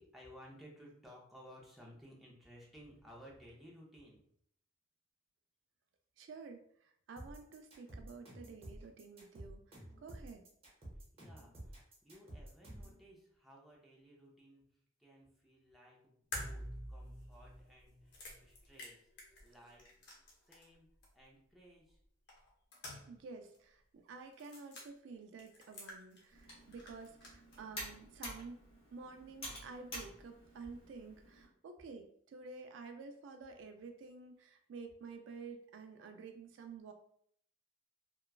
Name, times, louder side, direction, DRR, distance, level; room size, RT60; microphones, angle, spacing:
voice 1, 0.0-4.2 11.1-19.1 19.4-19.9 20.5-20.9 21.1-22.0, equal, ahead, -4 dB, 0.6 m, -58 dB
voice 2, 6.2-10.4 23.1-28.6 28.9-36.9, right 4 dB, 70° right, 6 dB, 0.3 m, -51 dB
sound 1, 7.2-13.0, right 1 dB, 30° right, 0.9 m, -51 dB
sound 2, 16.3-20.8 21.0-21.1 22.3-23.3 23.5-23.6 24.3-24.9 25.4-26.5 26.7-27.6, left 1 dB, 60° left, 0.8 m, -48 dB
Computer keyboard, 26.3-31.5, left 1 dB, 30° left, 1.0 m, -49 dB
2.9 x 2.2 x 2.3 m, 0.66 s
head